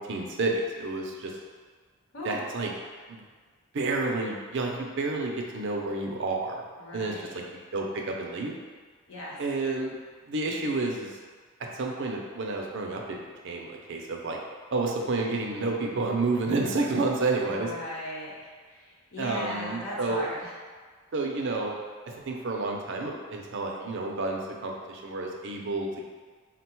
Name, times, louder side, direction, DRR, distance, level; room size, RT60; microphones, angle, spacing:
voice 1, 0.0-1.3 2.2-2.7 3.1-3.2 3.7-6.6 6.9-7.4 7.7-8.5 9.4-10.0 10.3-11.1 11.8-13.2 13.4-14.4 14.7-17.7 19.2-20.3 21.1-21.7 22.3-25.9, right 3 dB, 60° right, 0 dB, 0.5 m, -30 dB
voice 2, 6.8-7.3 9.1-9.4 17.4-20.5, left 1 dB, 65° left, -4 dB, 1.0 m, -38 dB
3.7 x 2.2 x 4.4 m, 1.5 s
head